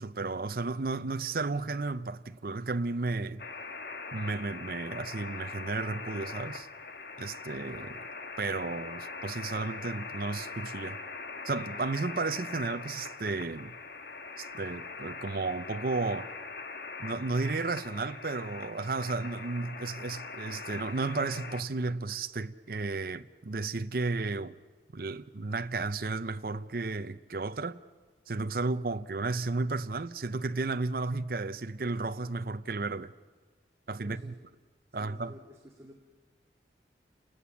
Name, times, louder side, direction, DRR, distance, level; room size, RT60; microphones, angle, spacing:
voice 1, 0.0-3.4 4.1-6.7 7.2-8.0 8.4-11.0 11.4-13.7 14.4-16.3 17.0-24.6 24.9-27.8 28.3-33.1 33.9-34.2 34.9-35.3, right 3 dB, 55° right, 0.6 m, -33 dB
sound 1, 3.4-21.6, left 4 dB, 60° left, 1.3 m, -42 dB
voice 2, 34.0-34.4 34.9-36.0, equal, 15° right, 2.4 m, -52 dB
29.0 x 20.0 x 7.1 m
head